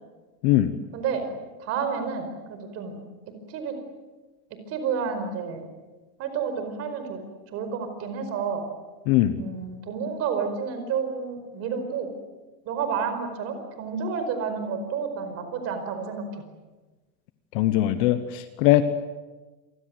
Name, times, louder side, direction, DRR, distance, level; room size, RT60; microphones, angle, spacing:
voice 1, 0.9-3.0 3.5-3.8 4.5-5.7 6.2-7.2 7.5-8.6 9.4-12.1 12.6-16.2, right 6 dB, 30° right, 8 dB, 5.0 m, -30 dB
voice 2, 17.5-18.8, left 14 dB, 35° left, 11 dB, 1.1 m, -20 dB
28.5 x 24.0 x 7.9 m, 1.2 s
supercardioid pair, 165°, 50 cm